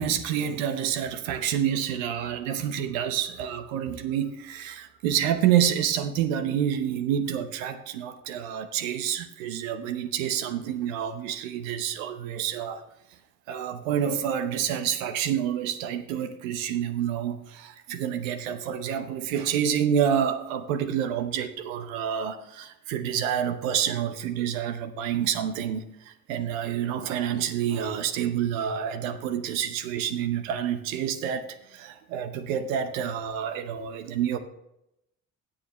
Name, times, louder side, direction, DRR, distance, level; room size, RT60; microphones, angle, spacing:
voice 1, 0.0-12.8 13.5-31.4 31.7-34.4, right 9 dB, 80° right, 9 dB, 0.9 m, -28 dB
16.0 x 7.4 x 3.1 m, 0.84 s
hypercardioid pair, 55°, 39 cm